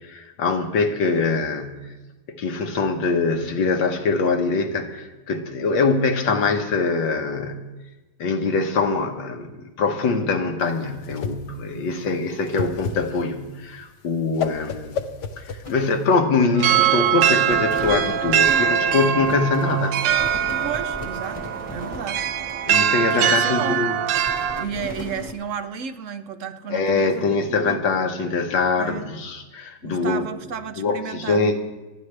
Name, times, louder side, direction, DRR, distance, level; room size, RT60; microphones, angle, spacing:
voice 1, 0.0-1.9 2.3-7.6 8.2-15.1 15.4-20.0 22.7-24.0 26.7-30.2 30.8-31.6, left 4 dB, 90° left, 5 dB, 1.8 m, -23 dB
Whoosh swoosh swish, 10.6-16.1, left 6 dB, 70° left, 1.4 m, -32 dB
voice 2, 11.7-12.3 18.5-18.6 19.1-19.4 20.6-21.4 21.7-22.3 23.1-23.9 24.6-27.8 28.8-29.1 29.8-31.6, right 7 dB, 65° right, 10 dB, 0.8 m, -33 dB
sound 1, 15.6-16.7 17.0-23.7 24.1-25.3, left 2 dB, 20° left, 1.1 m, -38 dB
sound 2, 16.6-24.7, right 9 dB, 80° right, 1.3 m, -22 dB
28.5 x 10.0 x 3.3 m, 1.2 s
omnidirectional pair, 2.0 m